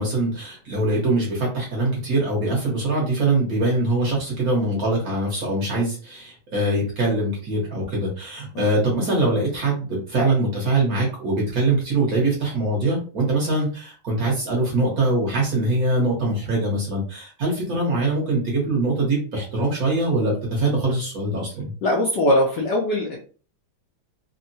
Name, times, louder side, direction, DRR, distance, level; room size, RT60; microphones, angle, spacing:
voice 1, 0.0-21.7, right 2 dB, 55° right, -3 dB, 1.2 m, -23 dB
voice 2, 21.8-23.2, left 1 dB, 75° left, -1 dB, 1.0 m, -21 dB
3.6 x 2.1 x 2.7 m, 0.39 s
omnidirectional pair, 2.4 m